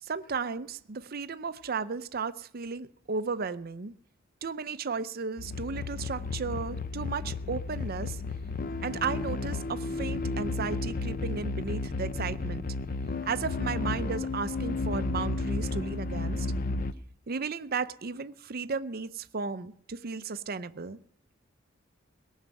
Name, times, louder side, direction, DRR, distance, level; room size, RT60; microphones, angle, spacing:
voice 1, 0.0-3.9 4.4-8.2 8.8-12.7 13.3-16.5 17.3-21.0, right 5 dB, 45° right, 0.6 m, -34 dB
sound 1, 5.4-16.9, left 3 dB, 45° left, 0.6 m, -33 dB
18.0 x 6.5 x 9.2 m
head